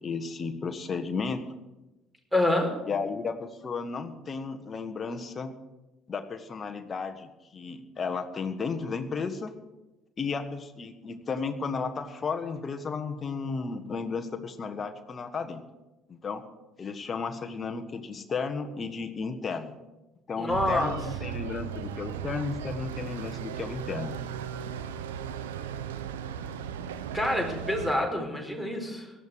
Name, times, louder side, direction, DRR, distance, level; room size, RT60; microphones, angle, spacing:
voice 1, 0.0-1.4 2.9-5.5 6.1-9.5 10.2-15.6 16.1-16.4 16.8-19.7 20.3-24.2, left 4 dB, 35° left, 7 dB, 1.5 m, -33 dB
voice 2, 2.3-2.8 20.4-20.9 27.1-29.1, left 1 dB, 5° right, 3 dB, 4.7 m, -27 dB
sound 1, 20.5-27.9, right 8 dB, 75° right, 0.9 m, -37 dB
18.0 x 13.0 x 5.0 m, 1.0 s
figure-of-eight pair, 55°, 0 cm